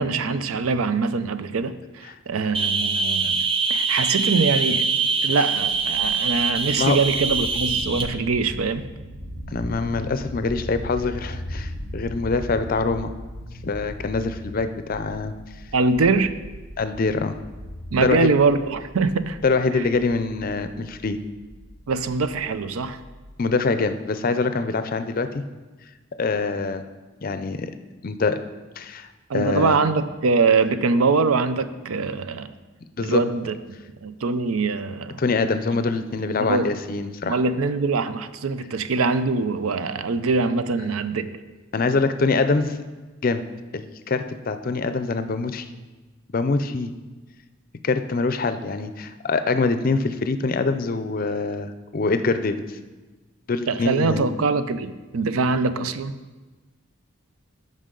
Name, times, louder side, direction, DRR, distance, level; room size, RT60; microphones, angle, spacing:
voice 1, 0.0-4.9 5.2-8.8 15.7-16.3 17.9-19.4 19.8-19.9 21.9-23.0 29.3-32.5 33.0-33.6 33.9-35.2 36.4-36.8 37.3-41.4 53.7-56.2, right 4 dB, 85° right, 12 dB, 0.5 m, -23 dB
sound 1, 2.5-8.0, right 4 dB, 25° right, 0.5 m, -23 dB
sound 2, 5.6-23.5, equal, 50° right, 1.3 m, -38 dB
voice 2, 9.5-13.1 13.6-15.3 16.8-17.3 18.0-18.3 19.4-21.2 23.4-25.4 26.2-26.8 27.2-27.7 28.0-28.4 28.8-29.8 33.0-33.2 35.2-37.4 41.7-42.8 43.2-43.4 43.7-45.7 46.3-46.9 47.8-52.8 53.5-54.2, left 3 dB, 40° left, 10 dB, 0.5 m, -24 dB
13.5 x 5.4 x 3.8 m, 1.2 s
head